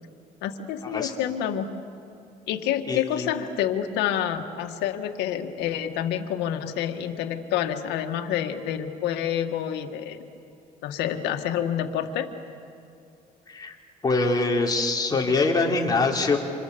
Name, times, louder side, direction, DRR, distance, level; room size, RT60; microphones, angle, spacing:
voice 1, 0.4-1.7 2.5-10.2 10.8-12.3, left 10 dB, 85° left, 6 dB, 1.9 m, -28 dB
voice 2, 2.9-3.3 13.5-13.8 14.0-16.4, left 3 dB, 25° left, -1 dB, 3.9 m, -24 dB
28.0 x 27.0 x 7.0 m, 2.6 s
cardioid pair, 110°, 17 cm